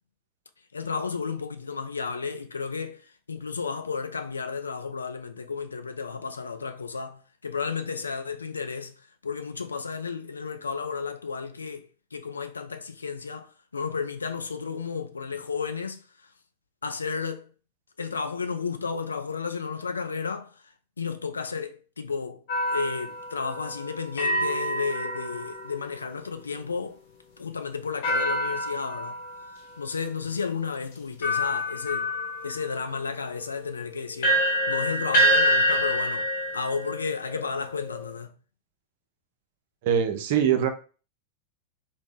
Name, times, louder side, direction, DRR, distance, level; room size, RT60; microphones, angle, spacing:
voice 1, 0.7-8.9 9.2-16.0 16.8-17.5 18.0-20.6 21.0-27.0 27.4-29.2 29.8-32.1 32.4-38.3, left 5 dB, 75° left, 0.3 m, -33 dB
sound 1, 22.5-26.0 28.0-29.5 30.3-30.4 31.2-38.1, equal, 55° left, 0.7 m, -27 dB
voice 2, 39.8-40.7, right 9 dB, 50° right, 0.5 m, -22 dB
2.8 x 2.0 x 3.6 m
figure-of-eight pair, 90°, 0 cm